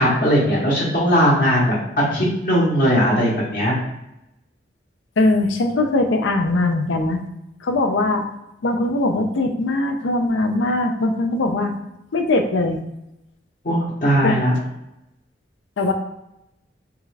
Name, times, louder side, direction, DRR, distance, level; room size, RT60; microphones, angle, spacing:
voice 1, 0.0-1.7 2.1-3.8 13.6-14.5, equal, 45° left, -7 dB, 0.8 m, -18 dB
voice 2, 5.2-7.2 7.6-8.3 8.6-11.7 12.1-12.8 14.2-14.4 15.8-15.9, left 2 dB, 75° left, 5 dB, 0.5 m, -20 dB
3.5 x 2.3 x 3.2 m, 0.87 s
head